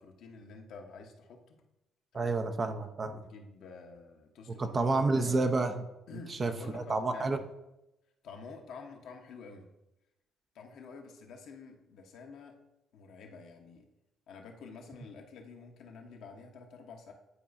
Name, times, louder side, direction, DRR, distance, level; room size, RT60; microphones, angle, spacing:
voice 1, 0.0-1.6 2.1-2.4 3.1-5.4 6.1-7.5 8.2-9.7 10.5-12.5 12.9-13.9 14.3-17.1, left 4 dB, 65° left, 2 dB, 0.9 m, -49 dB
voice 2, 2.1-3.2 4.5-5.7 6.3-7.4, right 3 dB, 40° right, 7 dB, 0.7 m, -30 dB
9.8 x 4.7 x 2.6 m, 0.93 s
hypercardioid pair, 50°, 0 cm